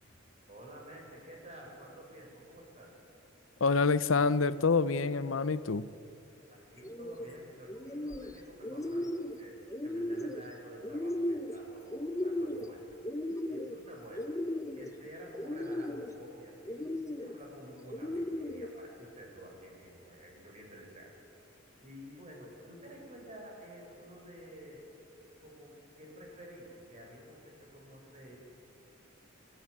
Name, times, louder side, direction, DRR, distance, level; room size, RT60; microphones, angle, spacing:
voice 1, 0.5-2.9 6.5-13.0 13.5-21.5 21.8-24.8 25.4-28.4, equal, 35° right, -1 dB, 7.1 m, -51 dB
voice 2, 3.6-5.9, left 4 dB, 80° left, 16 dB, 0.7 m, -27 dB
sound 1, 6.8-7.3 7.7-8.3 8.6-9.4 9.7-10.4 10.8-11.6 11.9-12.7 13.0-13.8 14.1-14.9 15.4-16.1 16.7-17.3 17.9-18.7, left 1 dB, 15° left, 0.9 m, -36 dB
29.0 x 16.5 x 9.8 m, 2.6 s
head